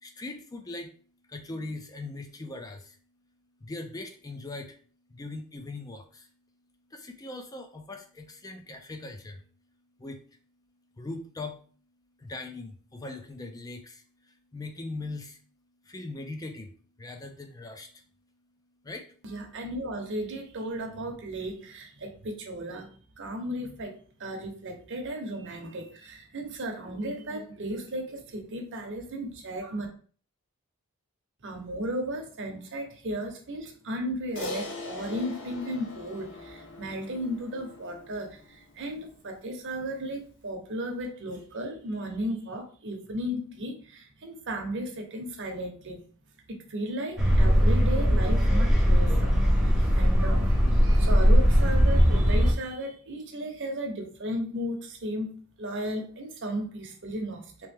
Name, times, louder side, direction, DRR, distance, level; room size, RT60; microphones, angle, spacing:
voice 1, 0.0-0.9 1.3-3.0 3.6-4.8 5.1-6.3 6.9-9.4 10.0-10.2 11.0-11.6 12.2-14.0 14.5-15.4 15.9-16.7 17.0-17.9 18.8-19.1, left 2 dB, 15° left, 5 dB, 0.5 m, -40 dB
voice 2, 19.2-22.9 23.2-29.9 31.4-46.0 46.5-57.7, equal, 55° right, 3 dB, 0.9 m, -35 dB
Crash cymbal, 34.4-38.9, left 2 dB, 55° left, 0.7 m, -41 dB
sound 1, 47.2-52.5, equal, ahead, 0.9 m, -20 dB
3.2 x 3.0 x 3.4 m, 0.43 s
head